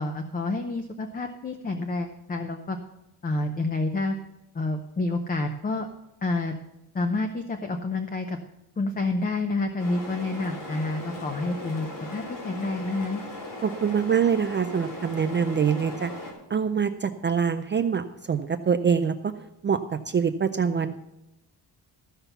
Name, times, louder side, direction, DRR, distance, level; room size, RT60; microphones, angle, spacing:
voice 1, 0.0-2.8 3.2-4.2 4.5-5.9 6.2-6.5 6.9-8.4 8.8-13.2, left 2 dB, 20° left, 5 dB, 0.7 m, -29 dB
sound 1, 9.8-16.3, left 2 dB, 85° left, 3.7 m, -38 dB
voice 2, 13.6-16.1 16.5-19.3 19.6-19.8 20.1-21.0, right 7 dB, 30° right, 8 dB, 0.4 m, -24 dB
14.0 x 5.7 x 6.9 m, 0.90 s
wide cardioid pair, 170°, 40 cm